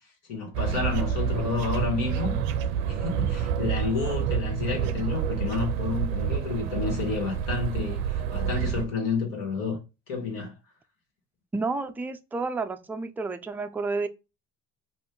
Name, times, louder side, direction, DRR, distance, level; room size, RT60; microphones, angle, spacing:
voice 1, 0.3-2.4 2.9-9.8 10.1-10.5, left 4 dB, 70° left, 1.6 m, -30 dB
sound 1, 0.5-8.9, right 8 dB, 75° right, 0.5 m, -28 dB
voice 2, 11.5-14.1, right 3 dB, 5° right, 0.3 m, -30 dB
2.6 x 2.5 x 3.6 m
hypercardioid pair, 75°, 34 cm